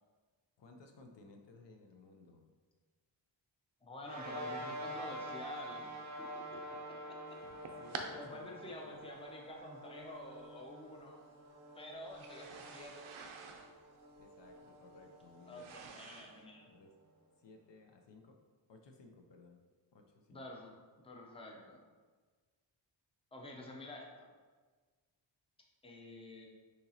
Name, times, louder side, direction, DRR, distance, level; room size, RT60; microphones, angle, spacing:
voice 1, 0.6-2.4 6.5-6.6 7.8-9.0 14.2-15.7 16.7-16.9 17.4-18.4 18.7-19.6 19.9-20.4, left 3 dB, 60° left, 3 dB, 0.6 m, -59 dB
voice 2, 3.8-5.9 8.1-11.2 11.7-13.1 15.4-16.7 20.3-20.7 21.0-21.8 23.3-24.3 25.8-26.5, left 1 dB, 10° left, 0 dB, 0.6 m, -49 dB
sound 1, 4.0-16.8, equal, 35° right, 0.6 m, -48 dB
sound 2, 7.3-8.1 9.1-9.2 10.4-10.5 12.0-16.4, right 5 dB, 90° right, 0.6 m, -49 dB
6.5 x 2.9 x 2.8 m, 1.4 s
wide cardioid pair, 110°, 48 cm